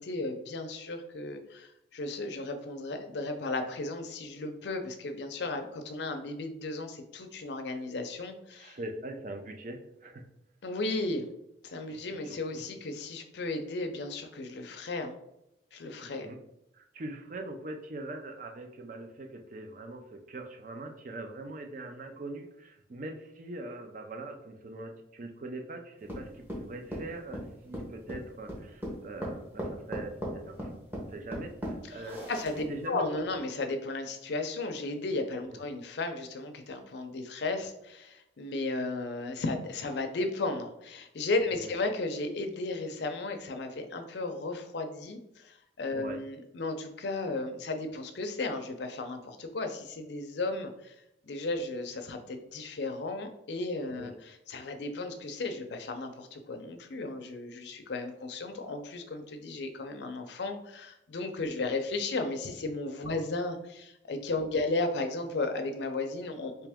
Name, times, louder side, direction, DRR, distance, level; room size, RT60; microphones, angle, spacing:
voice 1, 0.0-8.8 10.6-11.3 11.6-15.2 15.7-16.3 31.9-50.9 51.2-66.7, left 2 dB, 65° left, 6 dB, 0.5 m, -35 dB
voice 2, 8.5-10.2 11.8-12.0 12.3-12.6 16.0-16.4 16.7-30.7 31.1-32.2 32.7-33.2 35.5-35.6 41.5-41.7 45.9-46.2 53.9-54.1 63.0-63.2, right 2 dB, 45° right, 4 dB, 0.5 m, -42 dB
sound 1, 26.1-32.9, equal, 10° right, 0.8 m, -38 dB
3.5 x 2.9 x 3.4 m, 0.86 s
head